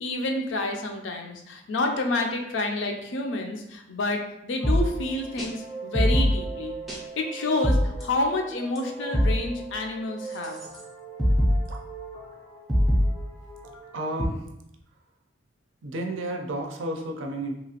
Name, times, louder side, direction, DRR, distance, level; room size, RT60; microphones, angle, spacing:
voice 1, 0.0-6.7 7.2-10.6, left 2 dB, 70° left, 3 dB, 0.4 m, -29 dB
sound 1, 4.6-14.3, equal, ahead, 0.5 m, -26 dB
voice 2, 13.9-14.5 15.8-17.6, right 1 dB, 80° right, 3 dB, 0.5 m, -32 dB
2.9 x 2.4 x 2.8 m, 0.81 s
head